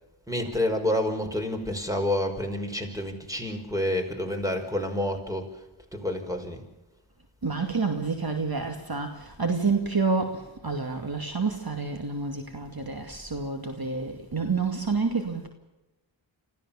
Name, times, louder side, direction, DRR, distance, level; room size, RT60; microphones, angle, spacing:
voice 1, 0.3-5.6 5.9-6.7, left 1 dB, 5° right, 5.2 m, -29 dB
voice 2, 7.4-15.5, right 4 dB, 50° right, 2.4 m, -28 dB
25.5 x 15.5 x 7.2 m
cardioid pair, 45°, 48 cm